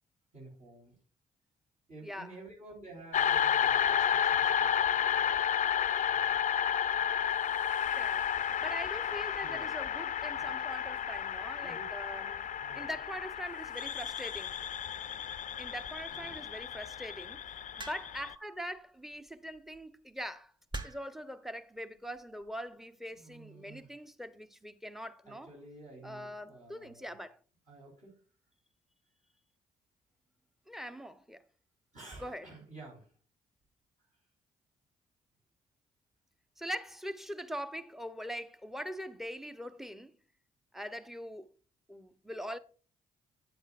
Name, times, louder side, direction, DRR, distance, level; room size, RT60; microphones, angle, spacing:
voice 1, 0.3-1.0 1.9-5.4 5.9-6.5 9.4-9.9 10.3-10.7 11.6-12.0 12.6-12.8 16.1-16.5 23.1-24.0 25.3-27.1 27.7-28.2 30.9-31.0 31.9-33.1 34.0-34.1, right 2 dB, 45° right, 4.1 m, -52 dB
sound 1, 3.1-18.3, left 8 dB, 45° left, 0.4 m, -32 dB
voice 2, 7.9-14.6 15.6-20.5 20.8-25.5 26.0-27.4 30.7-31.4 32.2-32.5 36.6-40.1 40.7-41.5 41.9-42.6, equal, ahead, 0.8 m, -42 dB
sound 2, 17.8-18.3 19.5-19.8 20.7-21.2 22.2-22.5, right 2 dB, 25° right, 1.6 m, -42 dB
9.4 x 7.9 x 2.5 m
hypercardioid pair, 50°, 18 cm